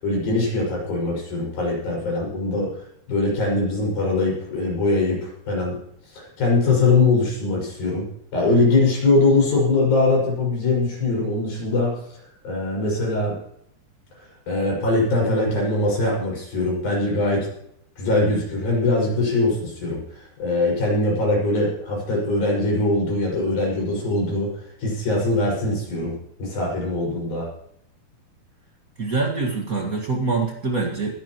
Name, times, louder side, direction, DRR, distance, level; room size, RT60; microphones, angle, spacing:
voice 1, 0.0-2.8 3.1-5.8 6.1-8.1 8.3-12.0 12.4-13.4 14.2-17.5 18.0-26.1 26.4-27.5, left 2 dB, 60° left, -2 dB, 7.6 m, -22 dB
voice 2, 29.0-31.1, right 3 dB, 80° right, 0 dB, 0.7 m, -24 dB
23.0 x 10.5 x 3.1 m, 0.71 s
omnidirectional pair, 4.8 m